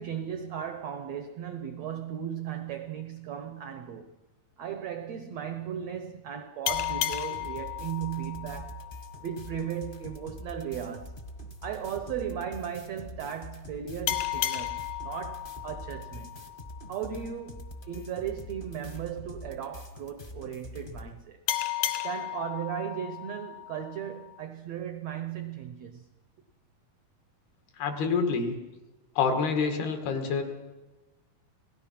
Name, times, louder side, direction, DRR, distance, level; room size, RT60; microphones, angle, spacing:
voice 1, 0.0-4.1 4.6-8.9 9.2-11.2 11.6-16.4 16.9-21.4 22.0-26.1, right 9 dB, 85° right, 1.5 m, -36 dB
sound 1, 6.7-9.9 14.1-17.3 21.5-24.4, left 13 dB, 70° left, 2.1 m, -34 dB
sound 2, 6.7-21.1, left 1 dB, 50° left, 0.6 m, -44 dB
voice 2, 27.8-28.6 29.2-30.4, left 5 dB, 90° left, 4.2 m, -27 dB
27.5 x 18.0 x 5.9 m
omnidirectional pair, 4.4 m